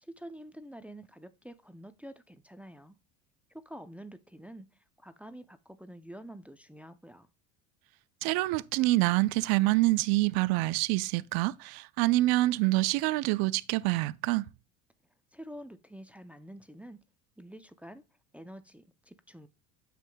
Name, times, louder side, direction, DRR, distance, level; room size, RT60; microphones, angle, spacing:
voice 1, 0.0-3.0 3.5-7.3 15.3-17.0 17.4-18.0 18.3-19.5, right 1 dB, 5° right, 0.5 m, -47 dB
voice 2, 8.2-14.5, right 19 dB, 65° right, 0.6 m, -26 dB
9.2 x 7.4 x 2.2 m
supercardioid pair, 110°, 40 cm